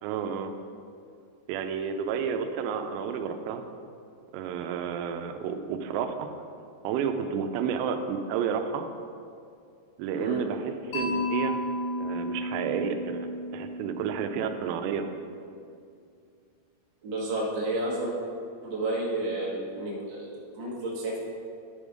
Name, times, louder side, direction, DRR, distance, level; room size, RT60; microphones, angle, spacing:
voice 1, 0.0-0.5 1.5-3.7 4.3-6.3 6.8-8.9 10.0-11.6 12.0-13.3 13.5-15.1, right 7 dB, 85° right, 7 dB, 2.8 m, -31 dB
Mallet percussion, 10.9-14.9, left 1 dB, 75° left, 3.3 m, -33 dB
voice 2, 17.0-18.1 18.6-21.2, right 2 dB, 60° right, -5 dB, 1.2 m, -31 dB
10.0 x 5.3 x 4.9 m, 2.4 s
omnidirectional pair, 4.9 m